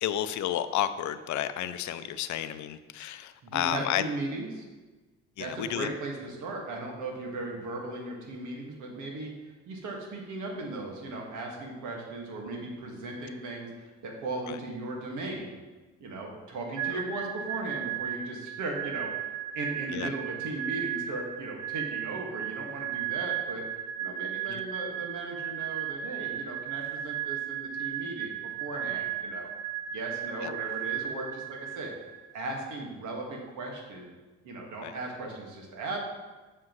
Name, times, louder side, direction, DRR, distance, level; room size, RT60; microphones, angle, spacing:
voice 1, 0.0-4.0 5.4-5.9 14.5-14.6 19.9-20.1 24.5-24.6 30.4-30.5 34.8-34.9, left 11 dB, 70° left, 12 dB, 0.5 m, -31 dB
voice 2, 3.4-4.6 5.4-9.3 9.7-15.5 16.0-19.1 19.5-23.6 24.0-29.5 29.9-31.9 32.3-34.1 34.4-36.0, right 2 dB, 80° right, 0 dB, 1.8 m, -37 dB
sound 1, 16.8-32.4, right 11 dB, 65° right, 0.5 m, -35 dB
7.7 x 6.4 x 3.1 m, 1.2 s
cardioid pair, 90°, 30 cm